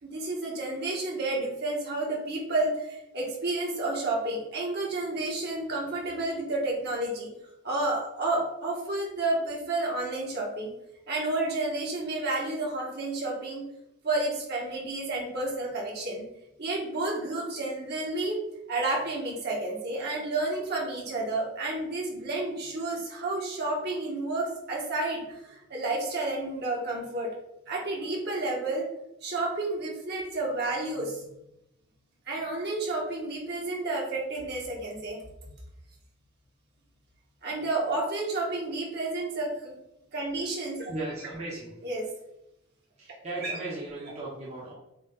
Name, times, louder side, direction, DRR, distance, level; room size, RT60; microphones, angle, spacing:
voice 1, 0.0-7.3 7.6-10.7 11.1-13.6 14.0-16.2 16.6-18.4 18.7-27.3 27.7-28.9 29.2-31.3 32.3-35.2 37.4-39.7 40.1-40.9 41.8-42.0 43.4-43.5, right 2 dB, 50° right, -3 dB, 2.0 m, -31 dB
voice 2, 40.9-41.8 43.0-44.7, right 2 dB, 30° right, -7 dB, 1.4 m, -37 dB
7.9 x 3.4 x 4.0 m, 0.85 s
head